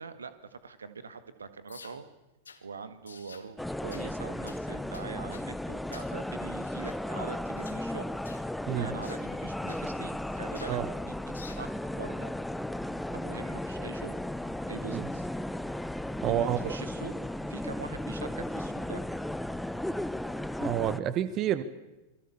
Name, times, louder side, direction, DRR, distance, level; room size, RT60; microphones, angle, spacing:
voice 1, 0.0-2.1 2.6-8.1 8.7-11.7 12.0-12.3 13.1-14.2 14.7-15.3 16.3-19.0, right 5 dB, 70° right, 11 dB, 1.9 m, -43 dB
sound 1, 1.7-2.0 2.4-2.6 3.1-3.5 3.9-4.1 4.5-4.6 4.9-5.5 5.9-6.1 6.6-7.0 7.6-7.8 8.2-8.5 9.0-9.2 9.7-9.9 10.5-10.8 11.3-11.7, left 5 dB, 75° left, 2.1 m, -50 dB
sound 2, 3.6-21.0, left 1 dB, 5° left, 0.9 m, -35 dB
voice 2, 16.2-16.8 20.6-21.6, right 11 dB, 35° right, 14 dB, 1.3 m, -29 dB
27.5 x 22.0 x 7.2 m, 1.0 s
figure-of-eight pair, 90°, 0 cm